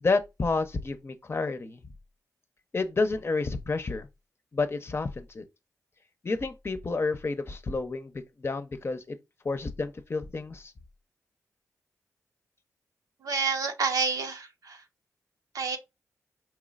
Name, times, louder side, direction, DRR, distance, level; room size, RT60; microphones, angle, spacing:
voice 1, 0.0-1.8 2.7-4.1 4.5-5.4 6.2-8.1 8.4-9.2 9.4-10.7, left 3 dB, 40° left, 0.7 m, -30 dB
voice 2, 13.2-14.8 15.5-15.8, right 5 dB, 75° right, 0.8 m, -28 dB
4.7 x 3.1 x 2.4 m
cardioid pair, 55°, 6 cm